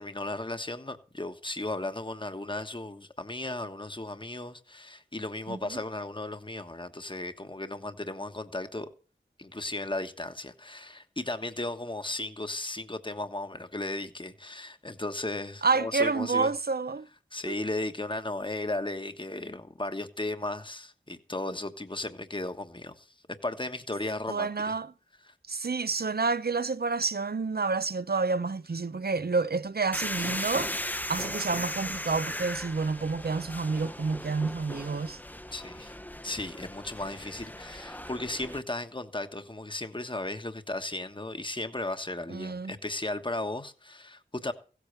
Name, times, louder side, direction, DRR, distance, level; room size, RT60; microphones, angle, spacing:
voice 1, 0.0-8.9 9.4-16.5 17.3-24.7 25.3-25.4 35.5-35.9 36.2-44.5, left 2 dB, 25° left, 1.3 m, -35 dB
voice 2, 5.5-5.8 15.6-17.1 17.5-17.6 24.3-24.9 25.5-35.2 42.3-42.7, right 4 dB, 55° right, 0.7 m, -29 dB
sound 1, 29.9-38.6, left 1 dB, 10° left, 0.8 m, -37 dB
16.0 x 8.4 x 6.7 m
wide cardioid pair, 40°, 19 cm